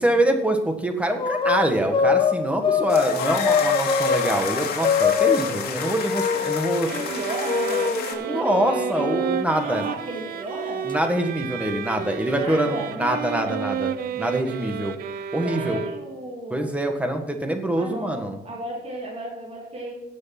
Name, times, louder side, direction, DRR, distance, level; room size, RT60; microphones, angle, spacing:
voice 1, 0.0-6.9 8.2-9.9 10.8-15.0 15.3-15.8 16.5-18.4, right 1 dB, 5° right, 5 dB, 1.6 m, -25 dB
sound 1, 1.0-4.3 4.8-6.8 7.4-9.4, left 5 dB, 30° left, 1.2 m, -23 dB
sound 2, 2.9-8.1, left 7 dB, 65° left, 2.3 m, -30 dB
voice 2, 6.8-9.1 9.5-10.9 12.3-13.5 15.4-16.7 17.8-19.9, right 1 dB, 35° right, -2 dB, 3.0 m, -34 dB
sound 3, 6.8-16.3, right 8 dB, 65° right, 0.7 m, -31 dB
17.5 x 6.4 x 6.0 m, 0.85 s
cardioid pair, 140°, 17 cm